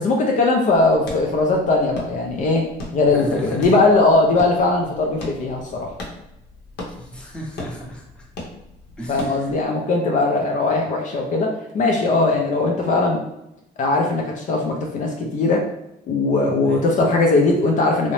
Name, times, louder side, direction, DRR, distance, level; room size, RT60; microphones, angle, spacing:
voice 1, 0.0-2.7 2.9-5.9 9.1-13.2 13.8-15.6 16.1-18.1, left 3 dB, 45° left, 1 dB, 0.4 m, -19 dB
sound 1, 0.6-9.7, left 1 dB, 75° left, 0.7 m, -38 dB
voice 2, 3.1-3.8 7.0-8.3 9.0-9.5 16.6-16.9, equal, 5° left, -3 dB, 0.7 m, -35 dB
2.6 x 2.0 x 3.1 m, 0.85 s
cardioid pair, 110°, 17 cm